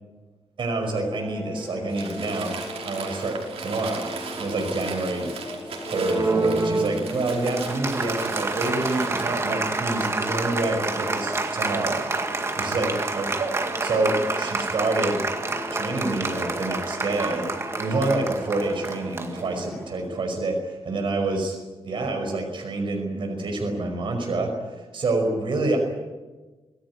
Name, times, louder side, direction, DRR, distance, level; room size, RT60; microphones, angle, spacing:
voice 1, 0.6-2.5 2.8-4.0 4.4-5.3 5.6-13.6 13.8-15.2 15.7-17.5 17.8-21.6 21.8-25.8, right 2 dB, 55° right, 3 dB, 5.4 m, -27 dB
sound 1, 1.1-19.9, left 2 dB, 20° left, 5.0 m, -39 dB
Crumpling crinkling, 1.9-9.5, right 5 dB, 85° right, 5.5 m, -38 dB
Applause, 5.9-19.9, right 3 dB, 25° right, 1.9 m, -28 dB
26.0 x 17.5 x 9.7 m, 1.3 s
wide cardioid pair, 170°, 10 cm